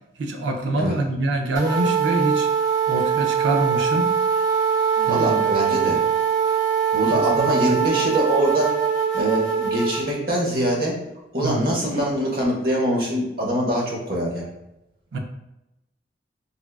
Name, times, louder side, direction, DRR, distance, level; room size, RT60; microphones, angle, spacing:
voice 1, 0.2-2.5 2.9-4.1 5.0-5.4 7.4-7.8 11.4-11.7 15.1-15.2, right 2 dB, 75° right, 4 dB, 0.4 m, -25 dB
sound 1, 1.5-10.0, right 7 dB, 20° right, 0.6 m, -22 dB
voice 2, 5.1-6.0 6.9-8.7 9.1-11.0 11.3-14.5, equal, 50° right, -3 dB, 0.8 m, -23 dB
3.5 x 2.3 x 2.3 m, 0.90 s
head